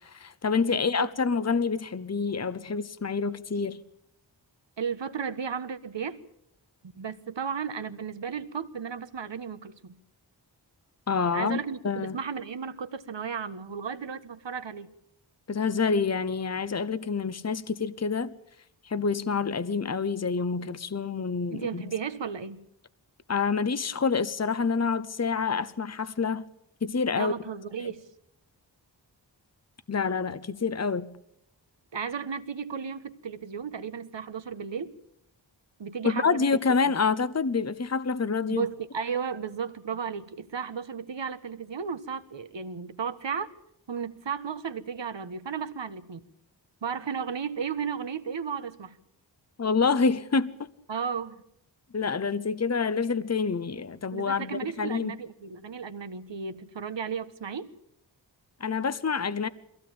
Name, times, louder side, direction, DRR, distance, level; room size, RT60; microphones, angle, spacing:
voice 1, 0.0-3.8 11.1-11.6 11.8-12.2 15.5-18.3 18.8-21.8 23.3-26.4 26.8-27.3 27.8-27.9 29.9-31.1 36.0-38.7 49.6-50.5 51.9-55.2 58.6-59.5, left 5 dB, 35° left, 1.0 m, -27 dB
voice 2, 0.6-1.1 4.8-6.2 6.9-9.9 11.3-14.9 21.5-22.6 27.1-28.1 31.9-34.9 35.8-36.4 38.5-43.5 43.9-46.2 46.8-49.0 50.9-51.4 54.1-57.7, right 6 dB, 70° right, 1.5 m, -34 dB
22.5 x 16.5 x 8.8 m
cardioid pair, 50°, 45 cm